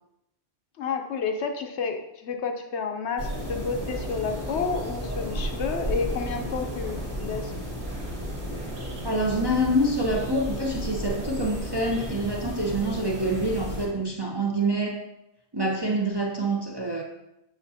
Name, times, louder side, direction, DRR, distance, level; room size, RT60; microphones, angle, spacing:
voice 1, 0.8-7.5, left 5 dB, 70° left, 5 dB, 0.9 m, -30 dB
sound 1, 3.2-13.9, equal, 55° right, 2.1 m, -33 dB
voice 2, 9.0-15.1 15.5-17.0, right 1 dB, 30° right, -1 dB, 0.5 m, -26 dB
8.1 x 5.7 x 2.7 m, 0.87 s
omnidirectional pair, 1.3 m